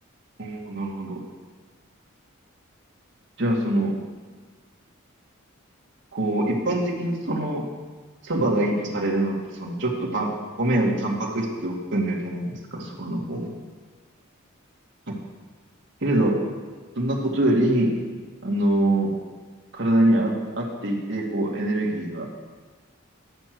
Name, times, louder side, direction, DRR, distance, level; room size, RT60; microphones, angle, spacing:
voice 1, 0.4-1.2 3.4-3.9 6.1-7.6 8.2-10.3 10.6-13.5 15.1-15.2 16.0-16.4 17.0-17.9 18.4-19.2 19.7-22.3, right 1 dB, 55° right, -2 dB, 2.0 m, -24 dB
11.0 x 6.4 x 7.7 m, 1.4 s
head